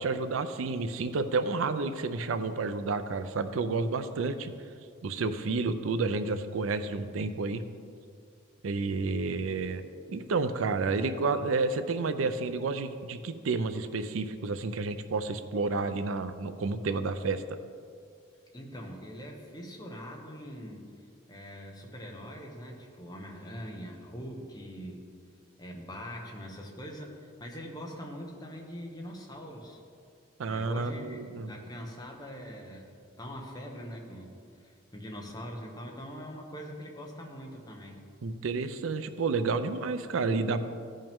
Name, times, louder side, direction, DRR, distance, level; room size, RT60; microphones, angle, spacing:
voice 1, 0.0-4.5 5.0-7.6 8.6-9.8 10.1-17.4 30.4-31.5 38.2-40.6, right 3 dB, 90° right, 10 dB, 0.5 m, -30 dB
voice 2, 18.5-20.9 21.3-25.1 25.6-29.8 30.5-32.9 33.2-34.3 34.6-38.0, equal, 20° left, 0 dB, 1.0 m, -43 dB
15.0 x 5.5 x 3.6 m, 2.3 s
head